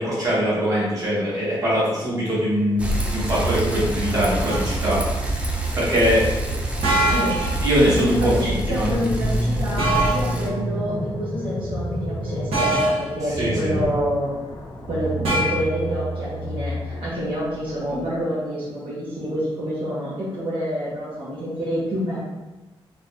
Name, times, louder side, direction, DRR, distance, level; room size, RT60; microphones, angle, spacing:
voice 1, 0.0-5.0 5.7-6.2 7.6-8.9 13.4-13.7, equal, 35° right, -8 dB, 1.5 m, -22 dB
Bicycle, 2.8-10.5, right 1 dB, 15° right, 0.5 m, -26 dB
sound 1, 4.5-4.8 6.8-7.6 9.8-10.3 12.5-13.1 15.2-15.6, right 1 dB, 85° right, 1.2 m, -22 dB
voice 2, 7.0-7.4 7.8-14.4 14.9-22.2, equal, 65° right, -9 dB, 1.1 m, -27 dB
sound 2, 8.2-18.1, equal, 60° left, 0.7 m, -29 dB
3.9 x 3.1 x 2.5 m, 1.1 s
wide cardioid pair, 140°, 10 cm